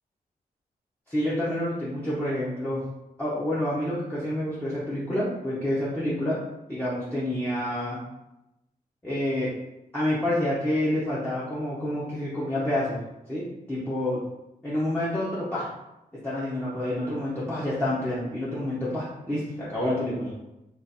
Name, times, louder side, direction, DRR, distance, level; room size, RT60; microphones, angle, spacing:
voice 1, 1.1-2.8 3.2-6.4 6.7-8.0 9.0-9.5 9.9-13.0 13.3-14.2 14.6-15.6 16.2-20.3, left 1 dB, 10° left, -9 dB, 0.8 m, -28 dB
3.9 x 2.5 x 4.1 m, 0.91 s
wide cardioid pair, 160°, 16 cm